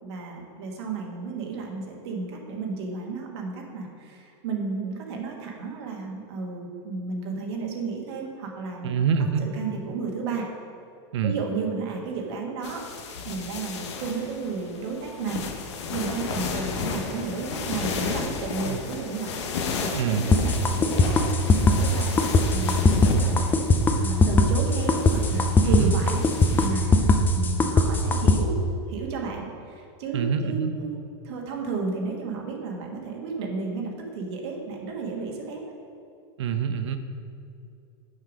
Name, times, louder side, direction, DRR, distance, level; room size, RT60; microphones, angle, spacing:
voice 1, 0.0-9.0 9.4-10.5 11.2-12.9 13.2-15.5 15.9-19.4 19.8-21.2 21.6-23.6 24.0-26.2 26.5-27.0 27.3-28.6 28.9-31.0 31.2-35.6, right 4 dB, 65° right, 0 dB, 1.3 m, -33 dB
voice 2, 8.8-9.5 11.1-11.3 18.6-18.8 19.9-20.2 25.6-25.9 30.1-30.7 36.4-37.0, right 7 dB, 85° right, 9 dB, 0.7 m, -25 dB
sound 1, 12.6-26.7, left 5 dB, 85° left, 0.9 m, -33 dB
sound 2, 20.3-28.4, left 2 dB, 15° left, 0.4 m, -19 dB
6.5 x 5.7 x 5.0 m, 2.5 s
supercardioid pair, 145°, 14 cm